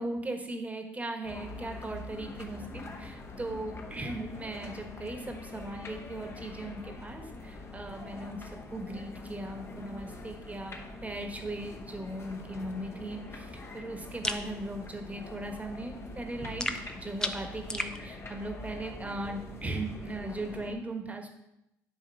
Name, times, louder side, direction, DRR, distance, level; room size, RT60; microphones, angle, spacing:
voice 1, 0.0-16.7 17.0-21.3, right 2 dB, 15° right, 5 dB, 1.4 m, -38 dB
sound 1, 1.3-20.7, left 2 dB, 30° left, 1.2 m, -44 dB
sound 2, 14.2-14.5 16.6-18.0, left 1 dB, 10° left, 0.6 m, -33 dB
9.7 x 3.6 x 5.5 m, 0.85 s
supercardioid pair, 75°, 8 cm